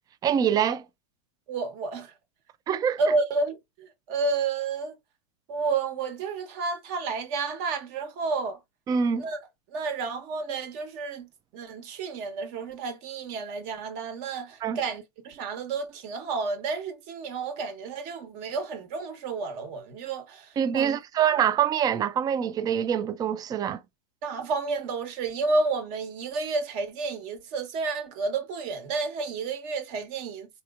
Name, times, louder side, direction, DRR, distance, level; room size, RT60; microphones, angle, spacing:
voice 1, 0.2-0.8 2.7-3.0 8.9-9.2 14.6-14.8 20.6-23.8, right 8 dB, 20° right, 0.3 m, -25 dB
voice 2, 1.5-2.1 3.0-4.9 5.5-8.6 9.2-9.4 9.7-11.3 11.5-21.0 24.2-30.5, right 4 dB, 50° right, 1.1 m, -31 dB
4.0 x 2.9 x 2.4 m
supercardioid pair, 130°, 19 cm